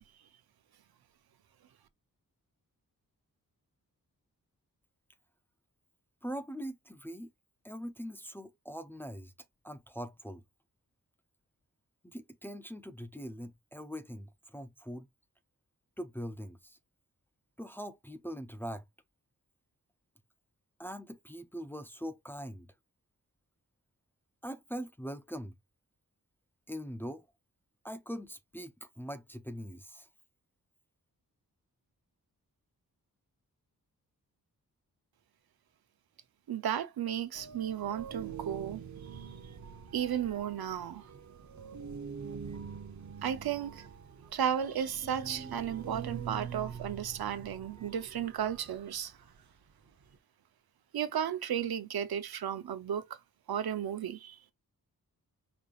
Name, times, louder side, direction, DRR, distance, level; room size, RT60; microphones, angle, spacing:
voice 1, 6.2-7.3 7.6-9.3 9.6-10.4 12.0-15.1 16.0-16.8 17.6-18.8 20.8-22.7 24.4-25.5 26.7-27.3 27.8-30.1, equal, 5° left, 0.5 m, -42 dB
voice 2, 36.5-38.8 39.2-39.3 39.9-41.0 43.2-43.8 44.3-49.1 50.9-53.2 53.5-54.4, right 9 dB, 90° right, 0.8 m, -34 dB
sound 1, 37.3-50.2, right 7 dB, 55° right, 0.9 m, -45 dB
5.1 x 3.3 x 2.4 m
wide cardioid pair, 110°, 36 cm